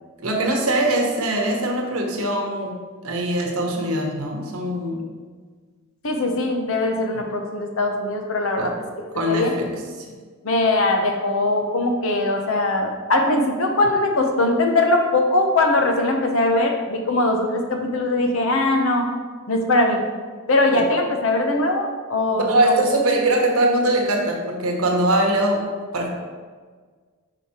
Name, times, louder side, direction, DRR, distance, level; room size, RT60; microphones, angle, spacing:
voice 1, 0.2-5.0 8.6-8.7 9.1-9.7 20.7-20.8 22.3-25.6 25.9-26.1, right 1 dB, 80° right, 1 dB, 1.2 m, -22 dB
voice 2, 6.0-8.7 9.3-9.5 10.4-19.1 19.5-20.0 20.5-22.8, left 2 dB, 70° left, 3 dB, 0.8 m, -21 dB
5.2 x 5.0 x 4.3 m, 1.5 s
head